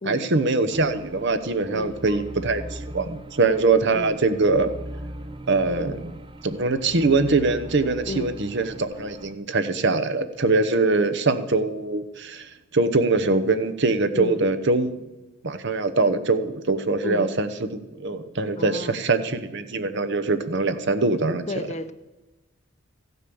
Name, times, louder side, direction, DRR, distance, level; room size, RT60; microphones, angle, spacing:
voice 1, 0.1-4.7 5.5-15.0 15.4-21.5, right 3 dB, 60° right, 11 dB, 1.0 m, -23 dB
sound 1, 0.7-9.3, right 1 dB, 25° right, 0.7 m, -40 dB
voice 2, 1.7-2.2 3.9-4.2 8.1-8.4 14.1-14.4 17.0-17.3 18.6-19.0 21.5-21.9, left 2 dB, 35° left, 11 dB, 0.7 m, -33 dB
15.0 x 8.3 x 7.0 m, 1.1 s
head